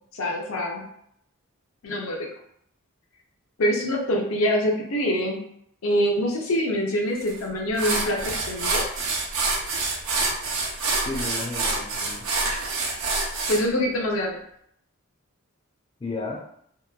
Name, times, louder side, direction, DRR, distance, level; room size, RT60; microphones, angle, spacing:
voice 1, 0.1-0.9 1.8-2.2 3.6-5.4 5.8-8.2 8.5-8.8 13.5-14.4, equal, 80° left, 0 dB, 0.6 m, -24 dB
sound 1, 7.3-7.4 7.8-13.6, right 3 dB, 75° right, 0.5 m, -26 dB
voice 2, 10.9-12.3 16.0-16.4, left 3 dB, 25° left, -3 dB, 0.3 m, -33 dB
2.8 x 2.1 x 2.3 m, 0.70 s
head